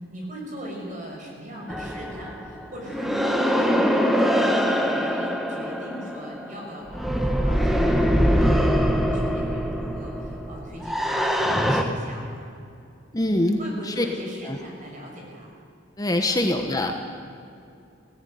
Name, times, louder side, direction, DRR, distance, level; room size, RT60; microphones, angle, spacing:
voice 1, 0.0-12.5 13.2-15.5 16.2-16.4, equal, 40° right, -1 dB, 5.9 m, -40 dB
sound 1, 1.7-11.8, equal, ahead, 1.2 m, -23 dB
voice 2, 13.1-14.1 14.4-14.6 16.0-17.0, left 1 dB, 20° left, 4 dB, 1.1 m, -24 dB
18.0 x 15.5 x 9.4 m, 2.5 s
head